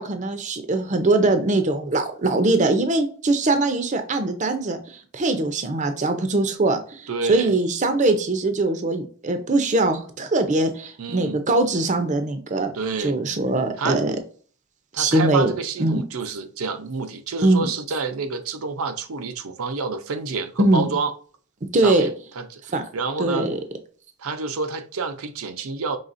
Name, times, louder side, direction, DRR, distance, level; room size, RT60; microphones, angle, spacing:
voice 1, 0.0-12.7 13.0-14.2 15.0-15.5 15.8-16.0 17.4-17.7 20.6-20.9 21.7-22.1 22.7-22.8 23.2-23.6, right 2 dB, 35° right, 0.5 m, -21 dB
voice 2, 7.1-7.5 11.0-11.4 12.7-13.2 13.8-14.0 14.9-21.1 21.7-22.1 22.4-22.6 22.9-23.5 24.2-26.0, right 4 dB, 80° right, 0.6 m, -28 dB
5.5 x 3.4 x 2.5 m
head